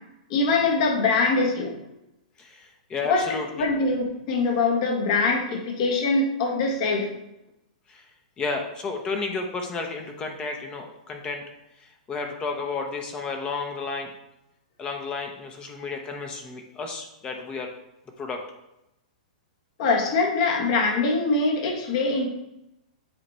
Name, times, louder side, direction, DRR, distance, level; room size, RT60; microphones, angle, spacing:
voice 1, 0.3-1.8 3.0-3.3 3.6-7.1 19.8-22.3, left 3 dB, 50° left, 1 dB, 1.6 m, -23 dB
voice 2, 2.4-3.7 7.9-8.1 8.4-11.4 11.8-14.1 14.8-17.7 18.2-18.4, left 4 dB, 20° left, 3 dB, 0.8 m, -32 dB
7.9 x 3.2 x 4.3 m, 0.88 s
hypercardioid pair, 125°, 4 cm